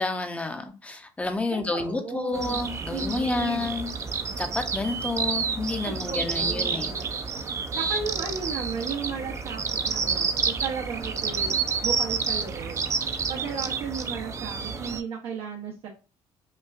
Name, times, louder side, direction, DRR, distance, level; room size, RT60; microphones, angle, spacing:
voice 1, 0.0-3.9 4.4-6.9, left 3 dB, 15° left, 0.6 m, -29 dB
voice 2, 1.5-2.6 2.9-3.8 5.8-7.3 7.8-12.9 13.3-15.9, right 5 dB, 70° right, 0.8 m, -35 dB
sound 1, 2.3-15.0, right 5 dB, 30° right, 0.5 m, -29 dB
5.3 x 2.4 x 2.4 m
cardioid pair, 130°, 10 cm